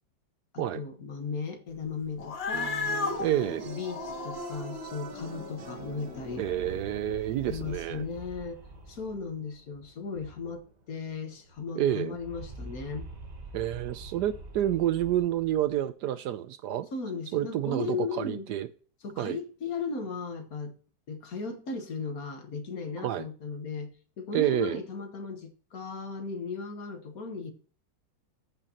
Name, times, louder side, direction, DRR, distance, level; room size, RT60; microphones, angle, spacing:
voice 1, 0.5-2.8 3.4-6.5 7.5-8.6 8.9-13.1 16.9-18.5 19.0-20.8 21.1-27.5, left 5 dB, 55° left, 1.6 m, -36 dB
Cat, 2.2-6.8, left 4 dB, 85° left, 2.6 m, -36 dB
sound 1, 2.5-7.8, right 8 dB, 90° right, 1.6 m, -45 dB
voice 2, 3.2-3.6 6.4-8.0 11.8-12.2 13.5-16.9 17.3-18.7 19.2-19.4 23.0-23.2 24.3-24.8, right 12 dB, 75° right, 1.0 m, -29 dB
sound 2, 5.6-10.8 11.1-11.2 11.4-15.8, right 1 dB, 35° right, 0.8 m, -46 dB
14.5 x 5.7 x 2.9 m
omnidirectional pair, 2.0 m